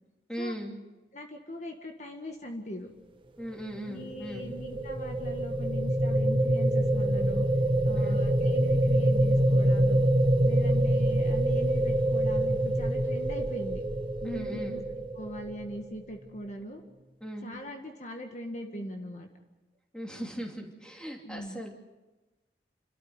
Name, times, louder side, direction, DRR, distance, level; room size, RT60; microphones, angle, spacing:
voice 1, 0.3-0.7 3.4-4.4 7.9-8.2 14.2-14.8 17.2-17.5 19.9-21.7, equal, 5° left, 0 dB, 2.8 m, -38 dB
voice 2, 1.1-2.9 3.9-7.4 7.8-10.1 10.4-13.8 14.2-14.8 15.1-16.8 17.4-19.3 21.2-21.7, equal, 40° left, 3 dB, 1.7 m, -40 dB
sound 1, 3.9-16.1, right 1 dB, 30° right, 1.1 m, -26 dB
29.5 x 13.5 x 8.1 m, 1.1 s
head